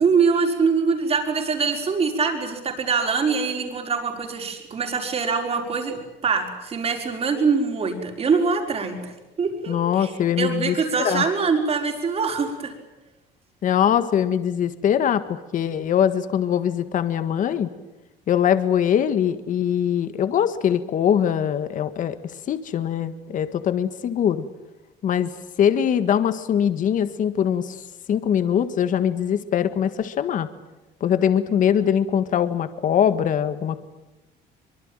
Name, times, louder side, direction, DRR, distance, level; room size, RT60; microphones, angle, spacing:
voice 1, 0.0-10.1 10.4-12.7, right 5 dB, 35° right, 4 dB, 5.5 m, -23 dB
voice 2, 9.7-11.2 13.6-17.7 18.3-22.2 22.5-24.4 25.0-25.3 25.6-30.5 31.0-33.8, left 9 dB, 45° left, 11 dB, 1.7 m, -22 dB
24.5 x 23.5 x 9.1 m, 1.0 s
cardioid pair, 135°, 18 cm